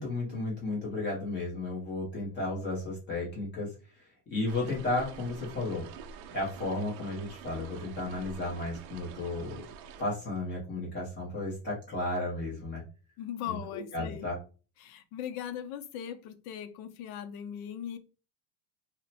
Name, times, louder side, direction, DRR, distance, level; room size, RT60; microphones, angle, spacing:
voice 1, 0.0-5.9 6.3-9.6 10.0-12.8 13.5-13.6 13.9-14.4, left 2 dB, 25° left, 0.9 m, -33 dB
sound 1, 4.5-10.0, right 6 dB, 75° right, 0.6 m, -47 dB
voice 2, 13.2-14.3 14.8-18.0, left 9 dB, 65° left, 0.6 m, -39 dB
2.8 x 2.1 x 4.0 m
cardioid pair, 180°, 46 cm